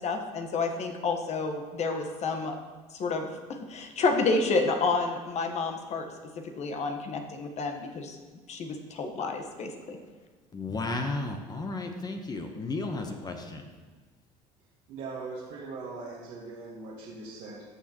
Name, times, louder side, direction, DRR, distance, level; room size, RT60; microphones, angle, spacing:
voice 1, 0.0-2.6 2.9-6.1 6.6-8.2 8.5-10.0, left 3 dB, 50° left, 4 dB, 1.2 m, -30 dB
voice 2, 10.5-13.6, left 2 dB, 25° left, 4 dB, 1.0 m, -33 dB
voice 3, 14.9-17.6, right 3 dB, 65° right, -5 dB, 1.5 m, -40 dB
14.0 x 6.4 x 3.0 m, 1.3 s
supercardioid pair, 90°, 15 cm